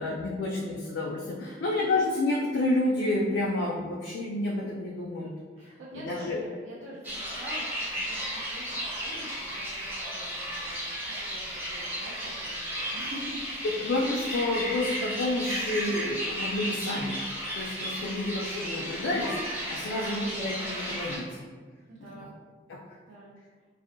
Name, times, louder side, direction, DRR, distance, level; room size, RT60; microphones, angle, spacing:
voice 1, 0.0-5.3 5.9-6.4 13.8-17.2 17.5-21.5 22.7-22.8, left 2 dB, 90° left, -3 dB, 0.3 m, -29 dB
voice 2, 5.6-11.0 11.2-13.4 19.9-20.3 21.9-22.3 23.1-23.3, right 1 dB, 90° right, -7 dB, 0.4 m, -45 dB
sound 1, 7.0-21.2, equal, 10° right, 0.5 m, -34 dB
2.6 x 2.0 x 2.5 m, 1.5 s
head